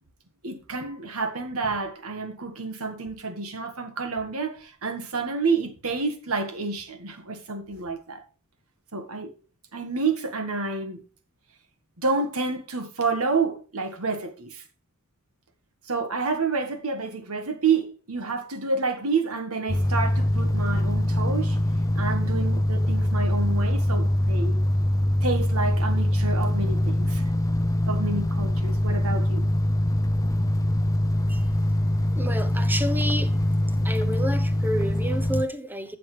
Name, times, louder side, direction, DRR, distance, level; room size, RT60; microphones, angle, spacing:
voice 1, 0.4-8.2 8.9-9.3 9.7-11.0 12.0-14.6 15.9-21.6 22.0-24.6 25.2-27.2 27.9-29.5, right 4 dB, 80° right, 1.6 m, -29 dB
sound 1, 19.7-35.4, left 1 dB, 15° left, 0.5 m, -23 dB
voice 2, 32.1-33.3 33.8-36.0, equal, 10° right, 0.9 m, -29 dB
13.0 x 7.0 x 3.3 m
head